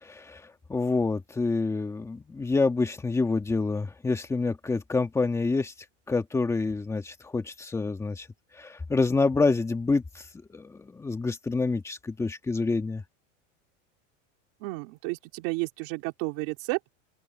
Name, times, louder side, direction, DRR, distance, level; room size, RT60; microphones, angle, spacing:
voice 1, 0.0-5.7 6.1-8.3 8.6-10.2 10.5-13.0, left 3 dB, 5° left, 1.6 m, -27 dB
voice 2, 14.6-17.0, right 25 dB, 50° right, 3.3 m, -32 dB
open air
supercardioid pair, 170°, 37 cm